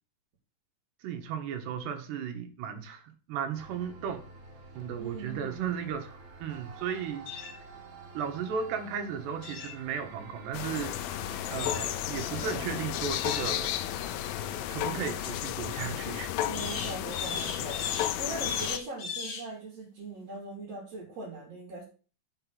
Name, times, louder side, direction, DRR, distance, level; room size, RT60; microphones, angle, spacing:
voice 1, 1.0-4.2 4.7-7.6 8.1-11.0 11.5-13.7 14.7-16.3, right 7 dB, 80° right, 6 dB, 3.4 m, -35 dB
sound 1, 3.5-15.4, right 3 dB, 65° right, 3.6 m, -49 dB
voice 2, 5.0-5.6 16.5-21.8, right 2 dB, 40° right, -2 dB, 3.4 m, -41 dB
sound 2, 7.3-7.5 9.4-9.8 11.6-11.9 13.1-13.5 16.5-19.5, left 5 dB, 45° left, 2.2 m, -37 dB
sound 3, 10.5-18.8, left 13 dB, 80° left, 2.1 m, -33 dB
6.6 x 6.1 x 7.5 m, 0.37 s
omnidirectional pair, 4.8 m